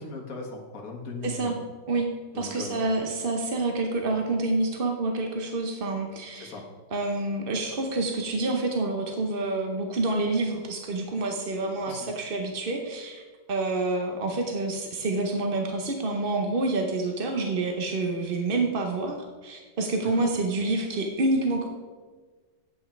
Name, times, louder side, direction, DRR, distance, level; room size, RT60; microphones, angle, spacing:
voice 1, 0.0-1.6 2.3-2.9 6.4-6.6 11.9-12.1 20.1-20.2, left 3 dB, 45° left, 0 dB, 1.8 m, -38 dB
voice 2, 1.2-1.6 1.9-2.1 2.3-6.5 6.9-13.2 13.5-19.2 19.4-21.7, right 2 dB, 50° right, 3 dB, 0.6 m, -28 dB
9.2 x 8.2 x 4.5 m, 1.4 s
omnidirectional pair, 2.1 m